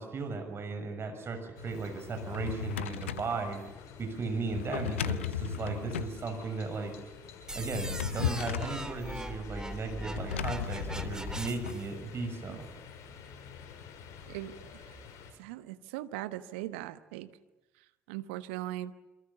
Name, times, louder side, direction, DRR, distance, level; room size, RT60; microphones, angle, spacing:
voice 1, 0.0-3.6 4.0-6.9 7.5-12.7, right 4 dB, 40° right, 6 dB, 6.5 m, -36 dB
sound 1, 1.5-15.3, left 7 dB, 60° left, 6.7 m, -50 dB
Drawer open or close, 2.0-3.4 4.5-6.2 7.5-8.8 10.1-11.8, left 10 dB, 80° left, 1.0 m, -35 dB
sound 2, 7.5-11.9, right 1 dB, 10° right, 3.4 m, -40 dB
voice 2, 15.4-17.3 18.1-18.9, right 14 dB, 70° right, 12 dB, 1.3 m, -39 dB
28.0 x 27.0 x 7.0 m, 1.0 s
figure-of-eight pair, 50°, 6 cm